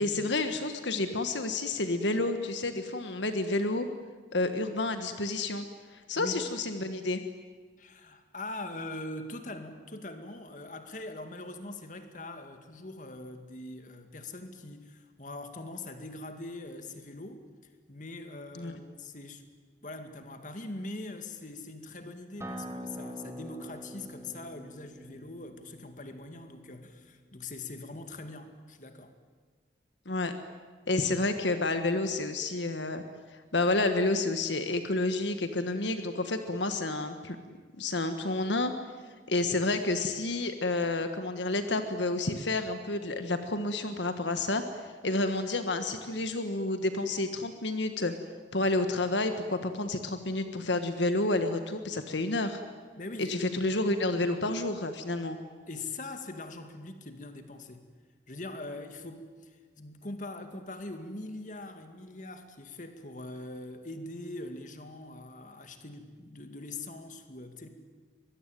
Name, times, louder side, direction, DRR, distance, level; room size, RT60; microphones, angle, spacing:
voice 1, 0.0-3.9 4.3-5.6 5.9-7.2 18.6-18.7 30.0-30.3 30.9-33.0 33.5-37.4 37.8-38.7 39.3-48.1 48.5-52.6 53.2-55.4, left 2 dB, 75° left, 8 dB, 1.6 m, -30 dB
voice 2, 7.8-17.4 17.9-19.5 19.8-29.1 52.9-53.6 55.7-57.9 58.3-67.7, left 2 dB, 40° left, 7 dB, 2.2 m, -42 dB
Acoustic guitar, 22.4-27.6, equal, 15° right, 2.6 m, -44 dB
24.0 x 22.0 x 9.3 m, 1.5 s
head